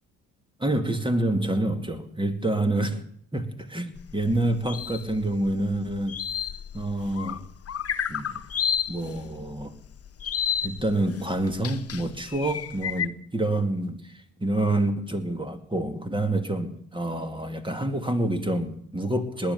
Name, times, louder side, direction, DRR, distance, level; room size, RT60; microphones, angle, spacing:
voice 1, 0.6-3.0 3.3-6.2 6.7-7.4 8.1-8.4 8.9-9.7 10.6-19.5, right 1 dB, 10° right, 8 dB, 2.2 m, -27 dB
sound 1, 4.0-13.1, left 8 dB, 35° left, 0.9 m, -31 dB
20.0 x 9.7 x 7.0 m, 0.67 s
hypercardioid pair, 50°, 41 cm